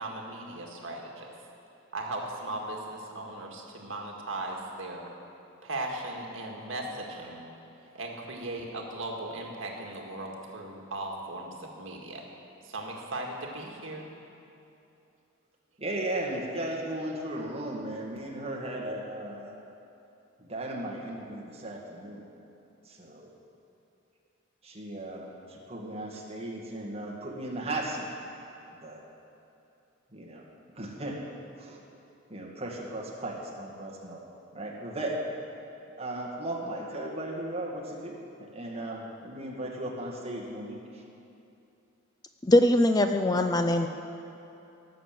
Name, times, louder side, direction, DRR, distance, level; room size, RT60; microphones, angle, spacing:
voice 1, 0.0-1.3 1.9-5.1 5.6-7.4 7.9-12.2 12.6-14.1, right 2 dB, 65° right, 0 dB, 1.8 m, -37 dB
voice 2, 15.8-19.5 20.4-22.2 22.8-23.3 24.6-28.1 28.8-29.0 30.1-30.4 30.8-31.2 31.6-31.8 32.3-34.2 34.5-35.2 36.0-38.2 38.5-41.0, right 1 dB, 30° right, -2 dB, 1.9 m, -36 dB
voice 3, 42.4-43.9, left 1 dB, 20° left, 7 dB, 0.4 m, -22 dB
18.0 x 6.8 x 7.6 m, 2.8 s
head